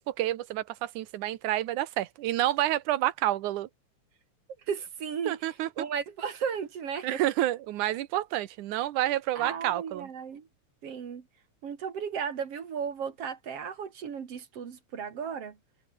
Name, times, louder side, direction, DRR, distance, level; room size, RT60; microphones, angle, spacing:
voice 1, 0.0-3.7 5.3-5.7 7.0-10.1, right 14 dB, 85° right, 2.5 m, -29 dB
voice 2, 4.7-5.4 5.8-7.2 9.4-10.5 10.8-11.2 11.6-15.6, right 7 dB, 55° right, 2.9 m, -35 dB
omnidirectional pair, 3.4 m